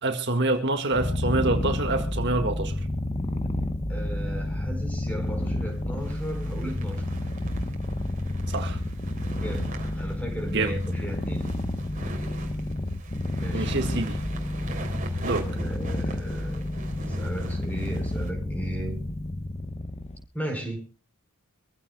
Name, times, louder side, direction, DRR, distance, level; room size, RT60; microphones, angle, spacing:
voice 1, 0.0-2.7 8.5-8.8 10.5-10.7 13.5-14.2 15.2-15.5, right 2 dB, 50° right, 1.8 m, -26 dB
Purr, 0.9-20.2, left 1 dB, 25° left, 0.9 m, -30 dB
voice 2, 3.9-7.0 9.4-11.5 13.4-13.8 15.5-16.7 17.0-19.0 20.3-20.9, right 1 dB, 5° left, 4.6 m, -36 dB
sound 1, 4.3-4.4 5.2-18.3, right 2 dB, 35° right, 3.1 m, -42 dB
25.0 x 15.5 x 2.3 m
head